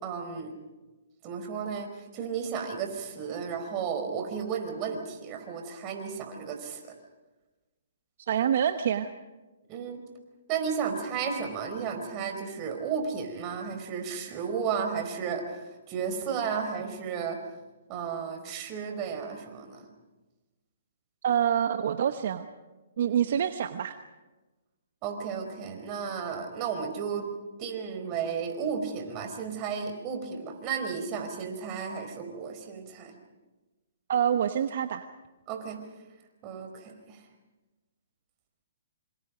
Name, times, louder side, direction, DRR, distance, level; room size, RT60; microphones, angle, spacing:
voice 1, 0.0-0.5 1.2-6.8 9.7-10.0 10.5-17.4 17.9-19.9 23.1-23.2 25.0-27.3 27.6-33.1 35.5-35.8 36.4-37.2, right 6 dB, 30° right, 4 dB, 4.6 m, -33 dB
voice 2, 8.3-9.1 21.2-22.5 23.0-24.0 34.1-35.1, right 9 dB, 60° right, 9 dB, 1.0 m, -26 dB
27.0 x 25.5 x 5.2 m, 1.2 s
hypercardioid pair, 140°, 0 cm